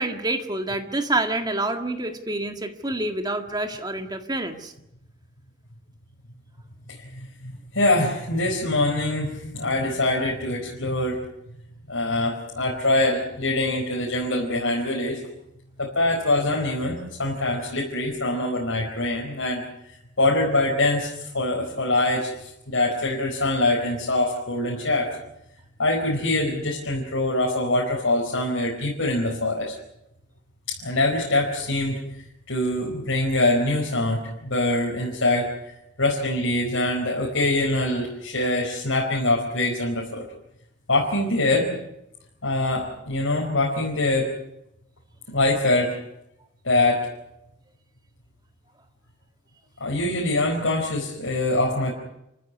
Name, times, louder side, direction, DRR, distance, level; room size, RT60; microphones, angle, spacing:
voice 1, 0.0-4.7, right 2 dB, 20° right, 6 dB, 1.8 m, -27 dB
voice 2, 7.1-11.2 11.9-15.2 15.8-19.6 20.2-25.1 25.8-29.7 30.7-32.0 32.5-35.5 36.0-40.2 40.9-41.7 42.4-44.3 45.3-45.9 46.6-47.1 49.8-51.9, left 2 dB, 80° left, -2 dB, 4.7 m, -24 dB
28.5 x 15.0 x 9.6 m, 0.83 s
head